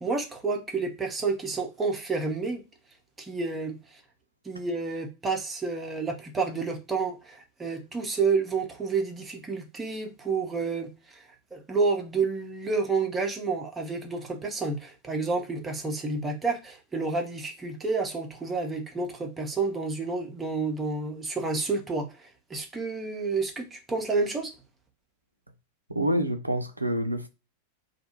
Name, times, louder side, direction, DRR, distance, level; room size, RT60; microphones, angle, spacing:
voice 1, 0.0-2.6 3.2-3.8 4.4-10.9 11.2-11.3 11.5-24.5, right 4 dB, 15° right, 0.6 m, -29 dB
voice 2, 25.9-27.3, equal, 85° right, 0.4 m, -27 dB
2.2 x 2.1 x 3.0 m
figure-of-eight pair, 90°, 0 cm